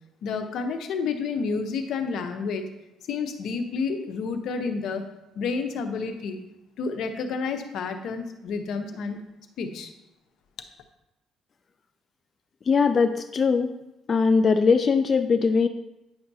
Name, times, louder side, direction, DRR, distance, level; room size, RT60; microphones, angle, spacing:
voice 1, 0.2-2.6 3.1-5.1 5.4-6.4 6.8-9.2 9.6-9.9, left 5 dB, 70° left, 6 dB, 0.8 m, -30 dB
voice 2, 12.7-13.7 14.1-15.7, left 5 dB, 35° left, 7 dB, 0.3 m, -20 dB
9.5 x 5.8 x 2.7 m, 0.92 s
cardioid pair, 110°, 0 cm